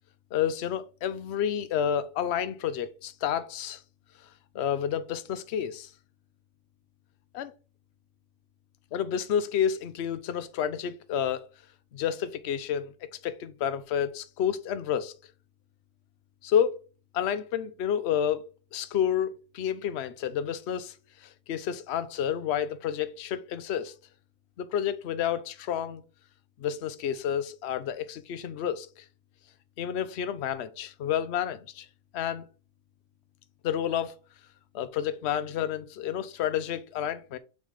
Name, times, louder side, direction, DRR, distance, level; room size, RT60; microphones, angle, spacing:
voice 1, 0.3-3.8 4.5-5.9 7.3-7.5 8.9-11.4 11.9-12.9 13.2-15.1 16.4-16.8 17.1-18.4 18.7-19.3 19.5-20.9 21.2-23.9 24.6-26.0 26.6-29.0 29.8-31.9 32.1-32.5 33.6-34.1 34.7-37.4, left 9 dB, 60° left, 0.8 m, -30 dB
6.4 x 3.3 x 5.3 m
omnidirectional pair, 1.4 m